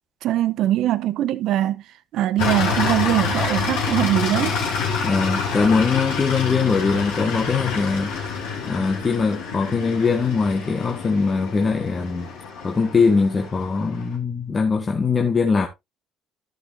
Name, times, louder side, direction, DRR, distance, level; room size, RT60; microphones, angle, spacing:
voice 1, 0.2-1.8 2.1-4.6, right 13 dB, 60° right, 0.8 m, -22 dB
sound 1, 2.4-14.1, left 5 dB, 65° left, 2.9 m, -27 dB
voice 2, 5.0-8.1 8.6-12.3 12.6-15.7, left 4 dB, 30° left, 1.4 m, -21 dB
13.5 x 6.6 x 2.6 m
figure-of-eight pair, 50°, 0 cm